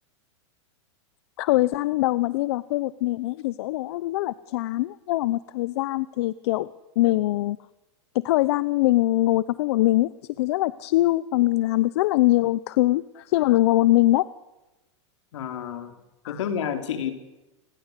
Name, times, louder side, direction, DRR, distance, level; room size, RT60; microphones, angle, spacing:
voice 1, 1.4-6.7 7.0-7.6 8.1-10.1 10.4-14.3 16.2-16.4, left 17 dB, 60° left, 16 dB, 0.8 m, -22 dB
voice 2, 15.3-15.9 16.3-17.1, left 8 dB, 80° left, 6 dB, 4.1 m, -29 dB
28.5 x 21.0 x 8.4 m, 1.1 s
supercardioid pair, 145°, 16 cm